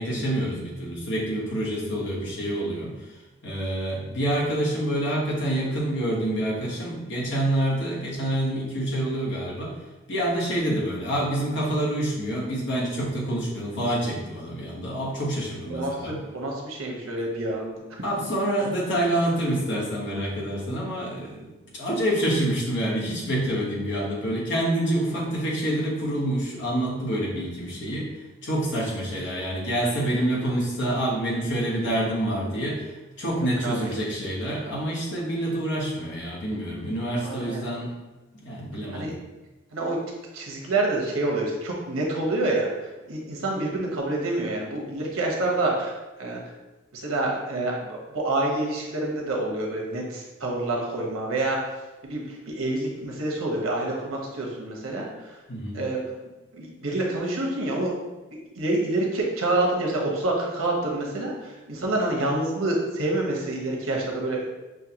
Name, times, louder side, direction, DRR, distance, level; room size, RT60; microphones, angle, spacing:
voice 1, 0.0-9.7 10.1-16.2 18.0-28.1 28.4-37.9 38.4-39.1 55.5-55.8, right 1 dB, 60° left, -4 dB, 1.1 m, -27 dB
voice 2, 15.7-17.8 33.6-33.7 37.2-37.6 38.9-39.1 39.7-40.0 40.3-45.9 46.2-46.4 46.9-51.6 52.0-55.4 55.7-56.0 56.5-57.9 58.6-64.5, right 2 dB, 90° right, -1 dB, 1.0 m, -27 dB
6.2 x 2.2 x 2.9 m, 1.1 s
head